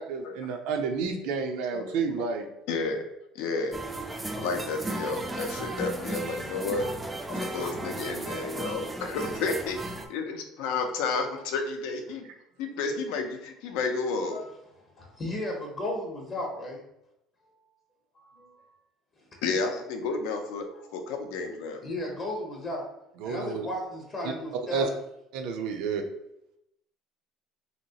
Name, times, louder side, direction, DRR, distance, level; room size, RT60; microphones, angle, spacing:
voice 1, 0.0-2.5 23.2-23.7 24.7-24.8 25.3-26.0, right 5 dB, 80° right, 5 dB, 0.5 m, -30 dB
voice 2, 1.7-2.3 2.7-3.1 3.3-3.8 4.3-6.9 7.3-12.3 12.6-14.4 19.4-21.8, left 4 dB, 80° left, 5 dB, 0.5 m, -31 dB
sound 1, 3.7-10.1, right 2 dB, 10° right, 0.3 m, -35 dB
voice 3, 14.7-16.8 18.2-18.5 19.2-19.3 20.7-20.9 21.8-22.9 23.2-25.0, left 1 dB, 30° left, 0 dB, 0.7 m, -35 dB
3.0 x 2.8 x 2.8 m, 0.82 s
cardioid pair, 130°, 0 cm